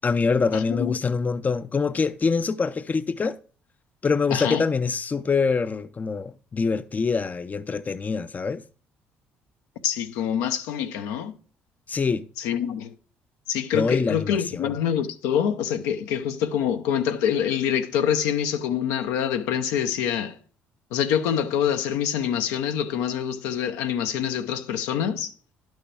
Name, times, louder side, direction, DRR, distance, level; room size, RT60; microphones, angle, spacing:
voice 1, 0.0-3.4 4.0-8.6 11.9-12.3 13.7-14.7, left 5 dB, 30° left, 0.5 m, -25 dB
voice 2, 0.5-0.9 4.3-4.7 9.8-11.3 12.4-12.9 13.5-20.4 20.9-25.3, left 9 dB, 85° left, 0.8 m, -25 dB
11.0 x 6.3 x 3.4 m
supercardioid pair, 65°, 5 cm